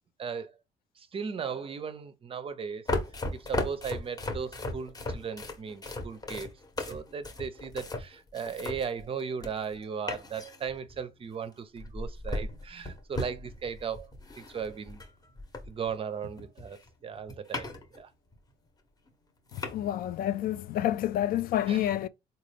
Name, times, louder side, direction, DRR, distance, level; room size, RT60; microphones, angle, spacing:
voice 1, 0.2-0.6 1.0-2.9 3.3-6.5 6.8-15.0 15.7-17.7 18.0-18.1 21.7-21.9, right 6 dB, 35° right, 0.5 m, -37 dB
sound 1, 2.9-9.7 10.1-11.0 11.8-15.9 16.2-18.0 18.3-18.4 19.1-19.2 19.5-19.7, left 2 dB, 20° left, 0.9 m, -36 dB
voice 2, 19.5-22.1, left 12 dB, 60° left, 0.4 m, -29 dB
3.7 x 2.3 x 3.3 m
cardioid pair, 110°, 17 cm